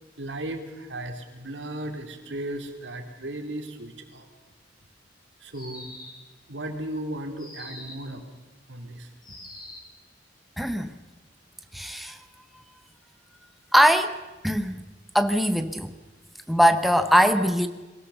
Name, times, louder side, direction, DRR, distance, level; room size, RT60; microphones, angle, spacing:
voice 1, 0.2-4.3 5.4-5.9 6.5-8.3 8.7-9.1, right 1 dB, 80° right, 4 dB, 2.7 m, -35 dB
sound 1, 5.5-6.3 7.4-8.1 9.2-10.0, left 1 dB, 25° left, 4.3 m, -43 dB
voice 2, 10.6-10.9 11.7-12.2 13.7-14.2 14.4-14.8 15.1-15.9 16.5-17.7, equal, ahead, 8 dB, 0.8 m, -21 dB
22.5 x 17.0 x 6.9 m, 1.2 s
head